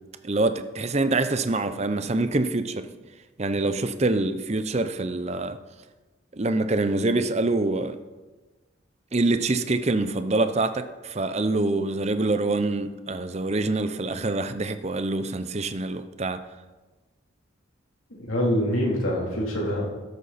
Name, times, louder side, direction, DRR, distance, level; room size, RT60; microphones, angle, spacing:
voice 1, 0.2-2.9 3.4-5.6 6.3-8.0 9.1-16.4, right 2 dB, 30° right, 0.6 m, -25 dB
voice 2, 18.2-19.9, equal, 80° left, 3.3 m, -25 dB
13.5 x 11.5 x 4.2 m
head